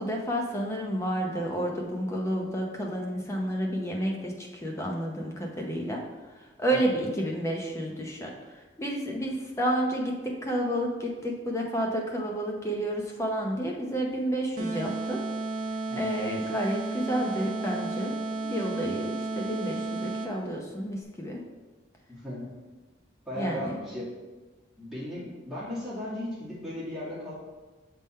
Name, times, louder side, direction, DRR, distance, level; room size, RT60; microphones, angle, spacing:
voice 1, 0.0-6.0 6.6-15.2 16.0-21.4 23.3-23.8, right 1 dB, 15° left, 0 dB, 0.7 m, -30 dB
voice 2, 6.7-7.1 15.9-16.4 22.1-22.5 23.3-24.1 24.8-27.3, left 1 dB, ahead, -10 dB, 2.1 m, -36 dB
sound 1, 14.6-20.5, right 3 dB, 40° right, 0.6 m, -33 dB
6.9 x 3.7 x 4.3 m, 1.2 s
head